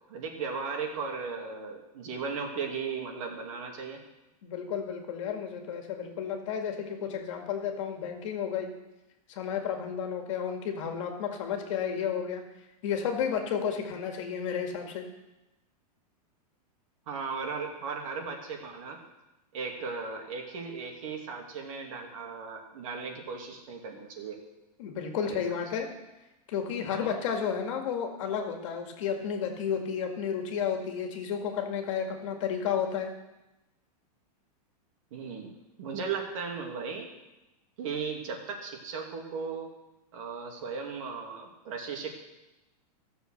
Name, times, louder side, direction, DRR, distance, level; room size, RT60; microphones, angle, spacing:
voice 1, 0.1-4.0 17.1-19.0 19.5-24.4 25.2-25.6 26.9-27.1 35.1-35.5 35.8-37.1 37.8-39.7 40.1-42.1, right 5 dB, 55° right, 1 dB, 2.5 m, -36 dB
voice 2, 4.4-8.7 9.3-12.4 12.8-15.0 24.8-25.9 26.5-33.1, left 7 dB, 50° left, 4 dB, 2.0 m, -32 dB
15.5 x 7.0 x 6.5 m, 1.0 s
supercardioid pair, 170°, 20 cm